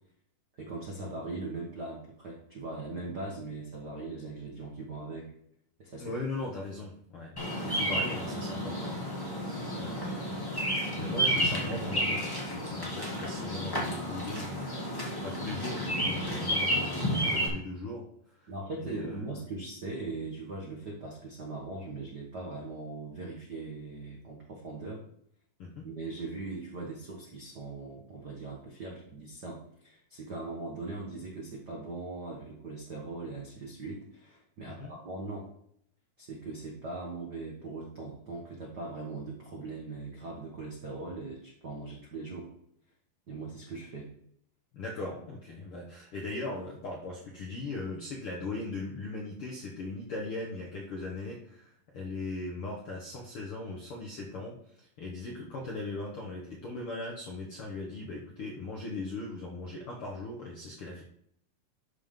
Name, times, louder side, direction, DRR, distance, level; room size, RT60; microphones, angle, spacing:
voice 1, 0.6-5.3 5.8-6.1 7.6-7.8 18.5-25.0 25.8-35.5 36.2-42.5 43.3-44.1, right 3 dB, 85° right, -2 dB, 0.9 m, -40 dB
voice 2, 6.0-7.3 7.6-9.5 9.7-18.1 18.8-19.2 25.6-25.9 34.6-34.9 44.7-61.0, left 2 dB, 70° left, -2 dB, 1.3 m, -39 dB
Bird vocalization bird call bird song, 7.4-17.5, equal, 10° left, 1.1 m, -31 dB
12.5 x 5.5 x 3.7 m, 0.69 s
omnidirectional pair, 4.3 m